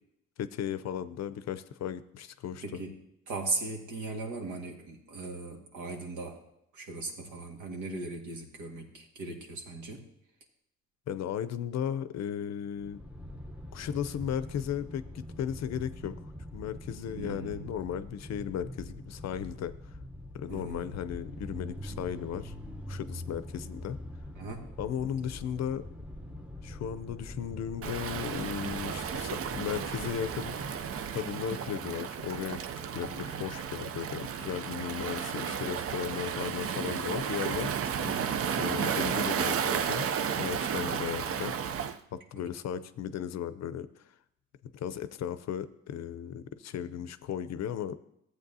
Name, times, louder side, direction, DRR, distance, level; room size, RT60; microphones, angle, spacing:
voice 1, 0.4-2.6 11.1-13.0 13.7-16.2 16.5-19.7 20.3-22.5 22.9-24.0 24.8-25.8 26.6-30.5 31.1-32.6 32.9-37.7 38.6-40.1 40.3-41.5 42.1-43.9 44.7-47.9, left 9 dB, 60° left, 13 dB, 0.6 m, -35 dB
voice 2, 2.6-2.9 3.3-6.4 6.7-10.0 17.1-17.7 20.5-20.9 24.4-24.6 32.9-33.5 35.1-35.5 37.9-38.4 40.7-41.2 42.4-42.5, right 3 dB, 75° right, 1 dB, 1.8 m, -39 dB
sound 1, 12.8-31.1, left 1 dB, 5° right, 0.8 m, -44 dB
Waves surf, 27.8-42.0, right 7 dB, 50° right, 0.5 m, -33 dB
14.0 x 8.2 x 2.7 m, 0.79 s
cardioid pair, 90°, 30 cm